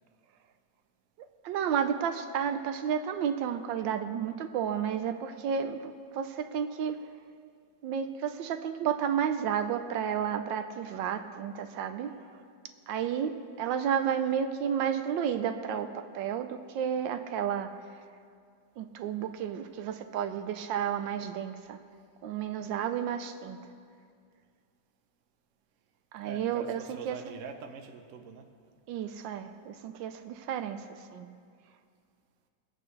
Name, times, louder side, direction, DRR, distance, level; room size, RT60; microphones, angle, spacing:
voice 1, 1.4-7.0 7.8-12.2 12.9-17.7 18.8-21.8 22.2-23.6 26.1-27.2 28.9-31.3, right 8 dB, 80° right, 8 dB, 1.3 m, -32 dB
voice 2, 26.2-28.5, right 6 dB, 55° right, 5 dB, 1.0 m, -44 dB
24.0 x 8.7 x 3.2 m, 2.2 s
omnidirectional pair, 2.0 m